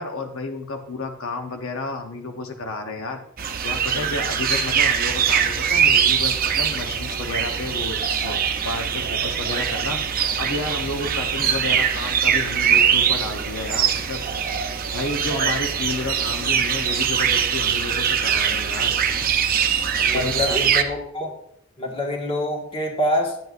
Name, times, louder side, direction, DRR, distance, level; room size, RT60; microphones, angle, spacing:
voice 1, 0.0-3.2 3.6-8.4 8.6-10.0 10.4-14.2 14.9-19.0 20.0-20.6, left 2 dB, 85° left, 4 dB, 0.9 m, -31 dB
sound 1, 3.4-20.8, right 7 dB, 45° right, 0.7 m, -22 dB
voice 2, 20.0-21.3 21.8-23.4, left 1 dB, 30° left, 1 dB, 1.6 m, -25 dB
11.0 x 8.0 x 2.5 m, 0.73 s
head